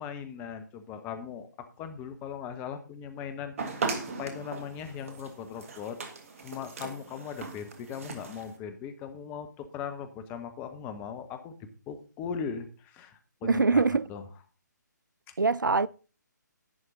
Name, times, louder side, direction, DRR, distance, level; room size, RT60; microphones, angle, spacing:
voice 1, 0.0-1.5 1.8-3.9 4.2-6.0 6.4-11.5 11.9-14.2, left 7 dB, 15° left, 1.0 m, -39 dB
sound 1, 3.6-8.6, right 4 dB, 45° right, 1.8 m, -38 dB
voice 2, 13.4-14.0 15.4-15.9, right 4 dB, 85° right, 0.4 m, -23 dB
11.0 x 8.6 x 3.8 m
figure-of-eight pair, 140°, 10 cm